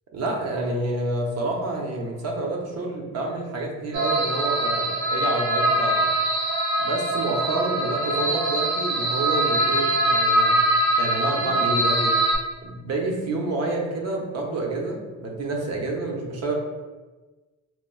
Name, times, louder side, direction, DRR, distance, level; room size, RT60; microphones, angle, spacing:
voice 1, 0.1-5.9 6.8-10.6 11.0-12.1 12.6-16.5, right 2 dB, 55° right, 0 dB, 0.7 m, -28 dB
sound 1, 3.9-12.4, right 1 dB, 75° right, 1.0 m, -23 dB
4.2 x 2.2 x 2.3 m, 1.3 s
cardioid pair, 90°, 30 cm